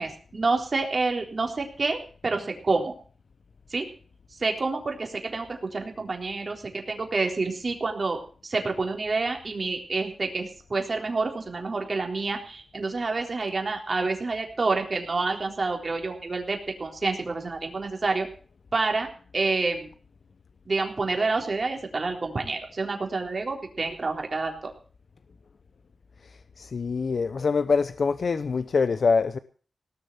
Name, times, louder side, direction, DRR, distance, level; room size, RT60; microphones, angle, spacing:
voice 1, 0.0-2.9 3.7-3.9 4.4-18.3 18.7-19.1 19.3-19.9 20.7-24.7, right 3 dB, 45° right, 3 dB, 3.7 m, -28 dB
voice 2, 26.6-29.4, left 5 dB, 70° left, 12 dB, 0.7 m, -24 dB
18.0 x 7.0 x 8.6 m, 0.42 s
wide cardioid pair, 95°, 0 cm